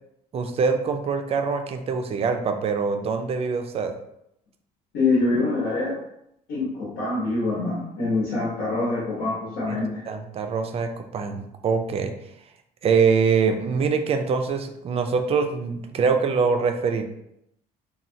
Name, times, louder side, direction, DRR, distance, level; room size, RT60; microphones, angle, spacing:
voice 1, 0.3-3.9 9.7-9.8 10.1-12.1 12.8-17.0, right 5 dB, 35° right, 6 dB, 0.4 m, -24 dB
voice 2, 4.9-6.0 6.5-10.0, left 3 dB, 80° left, -6 dB, 0.9 m, -25 dB
3.1 x 2.3 x 2.7 m, 0.78 s
cardioid pair, 110°, 17 cm